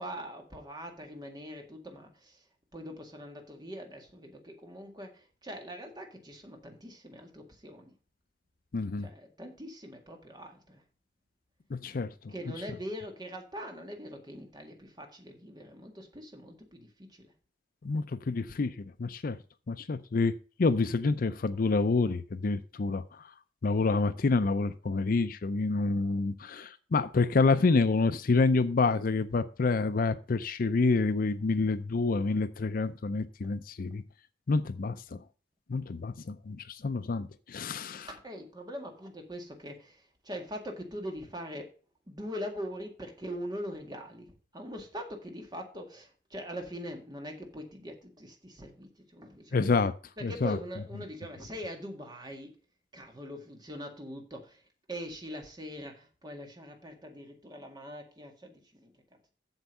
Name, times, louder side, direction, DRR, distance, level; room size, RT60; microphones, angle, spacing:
voice 1, 0.0-2.5 2.7-7.9 9.0-10.8 12.3-17.3 38.0-41.7 42.1-49.7 50.2-52.6 52.9-54.6 54.9-58.9, equal, 25° right, 1.9 m, -42 dB
voice 2, 8.7-9.1 11.8-12.3 17.8-19.4 19.7-20.3 20.6-23.0 23.6-34.0 34.5-35.2 35.7-38.1 49.5-49.9 50.2-50.6, left 3 dB, 50° left, 0.5 m, -28 dB
8.0 x 7.1 x 5.4 m
head